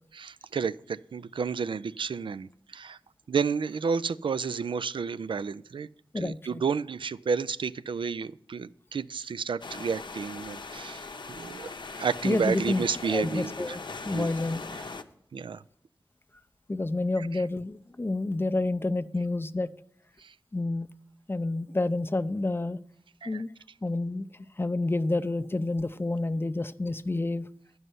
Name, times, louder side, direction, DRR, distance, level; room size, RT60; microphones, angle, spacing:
voice 1, 0.1-3.0 3.3-5.9 6.2-13.8 14.1-14.3 15.3-15.6 17.3-17.4 20.2-20.3 23.2-23.4, right 6 dB, 80° right, 17 dB, 0.3 m, -31 dB
voice 2, 6.1-6.6 12.2-13.8 14.1-14.6 16.7-19.7 20.5-20.9 21.3-22.8 23.3-23.5 23.8-24.3 24.6-27.5, left 2 dB, 25° left, 14 dB, 0.5 m, -29 dB
sound 1, 9.6-15.0, left 4 dB, 65° left, 0.7 m, -40 dB
11.0 x 5.5 x 7.8 m, 0.67 s
wide cardioid pair, 60°, 8 cm